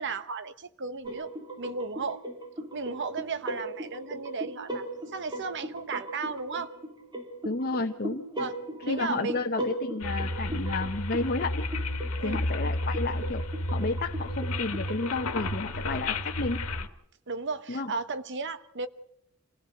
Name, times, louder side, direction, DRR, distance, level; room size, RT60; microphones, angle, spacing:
voice 1, 0.0-2.2 2.7-6.7 8.4-8.5 8.8-9.4 12.2-12.4 17.3-18.9, right 4 dB, 55° right, 11 dB, 1.0 m, -35 dB
sound 1, 1.0-15.1, right 1 dB, 20° right, 3.1 m, -38 dB
voice 2, 7.4-8.3 8.9-11.7 12.2-13.4 13.7-16.7 17.7-17.9, left 3 dB, 45° left, 4 dB, 0.9 m, -31 dB
sound 2, 10.0-16.9, left 1 dB, 85° left, 1.5 m, -32 dB
27.0 x 17.0 x 6.6 m, 0.73 s
head